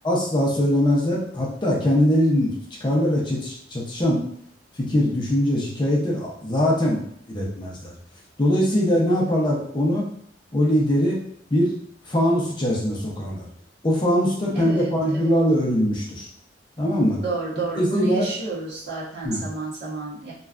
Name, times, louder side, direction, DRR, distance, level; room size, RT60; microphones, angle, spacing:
voice 1, 0.0-2.6 2.8-4.2 4.8-7.9 8.4-10.1 10.5-11.2 11.5-11.7 12.1-13.5 13.8-16.3 16.8-17.2 17.8-18.3 19.2-19.4, equal, 25° left, -3 dB, 0.6 m, -22 dB
voice 2, 14.5-15.3 17.1-20.3, right 2 dB, 60° right, -5 dB, 1.0 m, -30 dB
3.1 x 2.3 x 2.4 m, 0.66 s
head